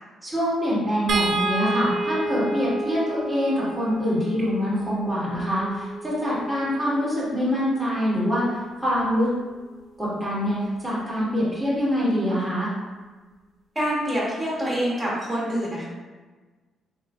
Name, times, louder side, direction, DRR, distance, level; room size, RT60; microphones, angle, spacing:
voice 1, 0.2-9.3 10.0-12.7, equal, ahead, -9 dB, 1.5 m, -25 dB
sound 1, 1.1-7.4 8.9-9.1 9.5-9.6, right 2 dB, 60° right, 0.4 m, -30 dB
voice 2, 13.7-15.8, equal, 20° right, -9 dB, 1.3 m, -26 dB
3.7 x 2.9 x 2.4 m, 1.3 s
cardioid pair, 90°, 0 cm